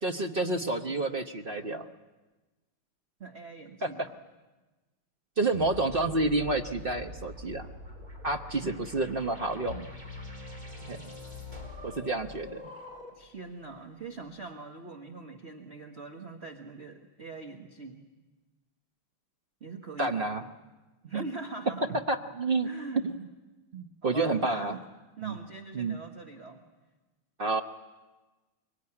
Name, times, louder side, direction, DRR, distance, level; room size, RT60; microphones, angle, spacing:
voice 1, 0.0-1.9 3.8-4.1 5.4-7.7 8.2-8.6 8.9-9.9 10.9-11.1 11.8-12.7 20.0-20.4 22.1-22.7 23.0-23.3 23.7-24.7 25.2-25.3 25.7-26.0 27.4-27.6, right 2 dB, 60° right, 5 dB, 0.5 m, -29 dB
voice 2, 3.2-4.2 8.6-8.8 13.1-18.0 19.6-20.5 21.0-22.0 22.6-23.0 24.0-24.8 25.2-26.6, right 4 dB, 35° right, 4 dB, 1.4 m, -42 dB
sound 1, 5.5-13.3, left 1 dB, 20° right, 3.5 m, -46 dB
sound 2, 9.7-12.6, left 3 dB, 65° left, 3.5 m, -44 dB
23.5 x 23.0 x 9.8 m, 1.2 s
omnidirectional pair, 2.4 m